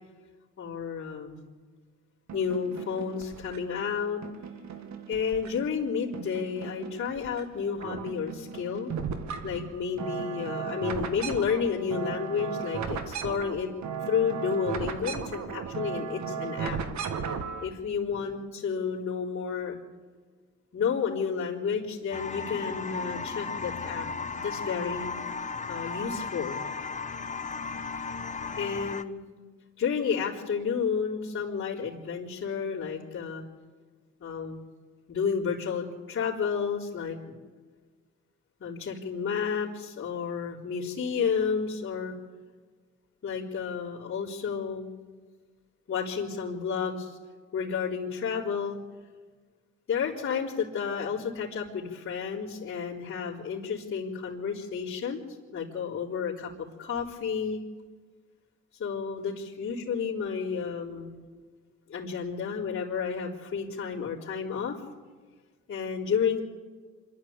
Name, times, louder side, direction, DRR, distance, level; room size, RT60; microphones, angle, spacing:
voice 1, 0.6-1.5 2.3-4.2 5.1-8.9 9.4-13.7 14.1-16.8 17.6-19.8 20.7-25.1 25.7-26.6 28.6-29.2 29.8-33.4 34.2-34.6 35.1-37.2 38.6-42.1 43.2-44.9 45.9-47.2 47.5-48.8 49.9-55.2 55.5-57.6 58.8-61.2 61.9-64.8 65.7-66.4, left 6 dB, 45° left, -9 dB, 3.8 m, -31 dB
sound 1, 2.3-3.8 4.2-5.8 6.1-7.4 7.7-17.7, right 6 dB, 65° right, 1.9 m, -36 dB
sound 2, 22.1-29.0, left 4 dB, 25° left, 1.0 m, -35 dB
26.0 x 12.0 x 8.8 m, 1.5 s
cardioid pair, 90°, 30 cm